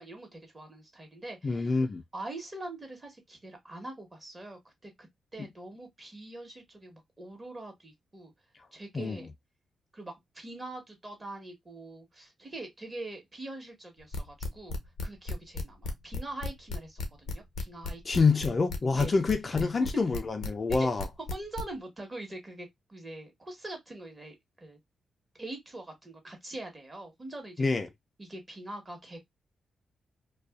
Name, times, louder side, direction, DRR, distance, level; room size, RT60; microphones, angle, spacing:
voice 1, 0.0-1.8 2.1-8.3 8.7-9.3 9.9-18.3 19.0-19.1 19.6-19.9 20.7-20.9 21.3-24.8 25.4-27.6 28.2-29.2, right 2 dB, 25° right, 1.1 m, -43 dB
voice 2, 1.4-2.0 8.9-9.2 18.0-21.1 27.6-27.9, left 4 dB, 35° left, 0.4 m, -26 dB
sound 1, 14.1-21.6, left 4 dB, 80° left, 0.6 m, -34 dB
2.4 x 2.2 x 2.2 m
cardioid pair, 80°, 0 cm